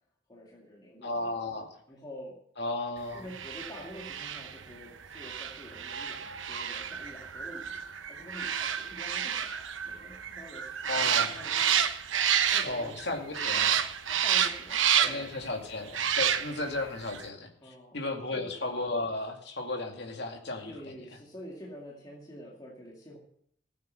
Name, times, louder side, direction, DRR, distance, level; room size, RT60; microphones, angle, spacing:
voice 1, 0.3-1.4 1.9-2.3 3.1-11.9 12.5-13.0 13.5-15.5 17.6-18.0 18.3-18.5 20.7-23.2, equal, 20° left, -3 dB, 2.2 m, -47 dB
voice 2, 1.0-1.7 2.6-3.2 10.9-11.3 12.6-13.7 14.9-20.8, left 2 dB, 60° left, 2 dB, 2.4 m, -34 dB
sound 1, 3.3-13.0 13.3-15.4 15.9-16.7 17.1-17.2, right 9 dB, 80° right, 1.0 m, -30 dB
15.0 x 8.7 x 6.4 m, 0.68 s
head